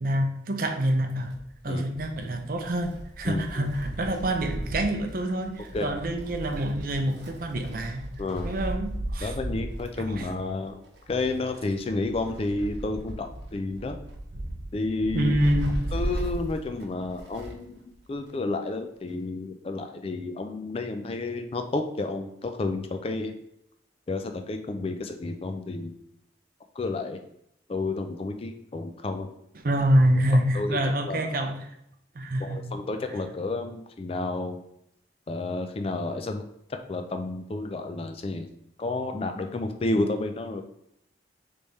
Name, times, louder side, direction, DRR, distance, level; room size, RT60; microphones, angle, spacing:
voice 1, 0.0-1.3 1.6-8.1 8.4-9.3 10.0-10.3 15.1-15.7 29.5-31.7 32.1-32.6, right 1 dB, 50° right, 5 dB, 0.6 m, -26 dB
Wind, 1.1-17.7 18.0-18.1 19.1-19.2, right 1 dB, 65° right, 0.9 m, -36 dB
voice 2, 3.2-3.7 5.7-5.9 8.2-8.5 9.2-10.8 11.1-14.0 14.7-15.3 15.9-17.8 18.1-23.3 24.1-26.0 26.8-27.2 27.7-29.3 30.5-30.8 31.0-31.3 32.4-34.6 35.3-36.4 36.9-38.5 38.8-40.6, left 2 dB, 30° left, 6 dB, 0.3 m, -31 dB
3.4 x 3.3 x 4.0 m, 0.78 s
head